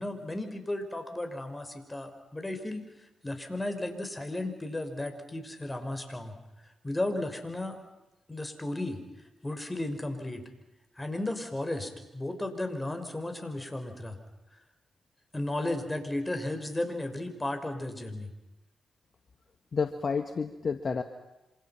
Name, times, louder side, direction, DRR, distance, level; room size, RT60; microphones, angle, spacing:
voice 1, 0.0-2.8 3.2-6.3 6.8-7.8 8.3-9.0 9.4-10.4 11.0-14.2 15.3-18.3, left 1 dB, 20° left, 7 dB, 6.1 m, -34 dB
voice 2, 19.7-21.0, left 5 dB, 50° left, 8 dB, 1.8 m, -30 dB
27.5 x 27.0 x 6.0 m, 0.98 s
supercardioid pair, 45°, 0 cm